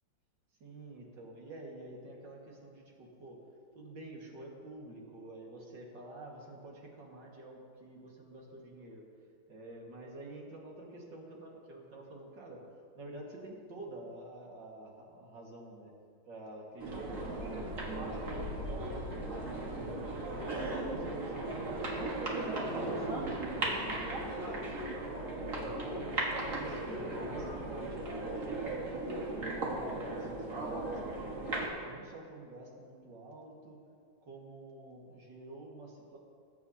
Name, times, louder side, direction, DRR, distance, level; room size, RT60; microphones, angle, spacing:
voice 1, 0.6-3.4 3.7-9.0 9.5-12.6 12.9-15.9 16.2-17.6 18.0-22.1 22.4-24.9 25.3-25.8 26.4-31.4 31.8-33.8 34.2-36.2, right 1 dB, 75° right, -2 dB, 2.5 m, -49 dB
sound 1, 16.8-31.7, right 2 dB, 45° right, 1.9 m, -37 dB
20.5 x 8.1 x 2.8 m, 2.2 s
omnidirectional pair, 2.0 m